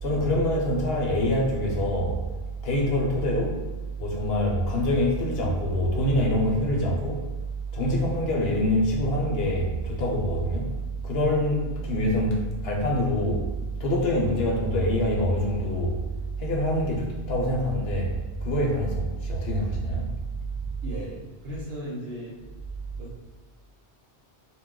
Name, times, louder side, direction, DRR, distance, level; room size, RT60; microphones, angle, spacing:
voice 1, 0.0-2.2 2.6-3.5 4.0-7.2 7.7-10.7 11.0-13.4 13.8-15.9 16.4-18.1 18.4-20.1, equal, 70° left, -2 dB, 0.8 m, -25 dB
voice 2, 20.8-22.4 23.0-23.2, equal, 70° right, -6 dB, 0.9 m, -36 dB
2.2 x 2.1 x 3.6 m, 1.2 s
omnidirectional pair, 1.1 m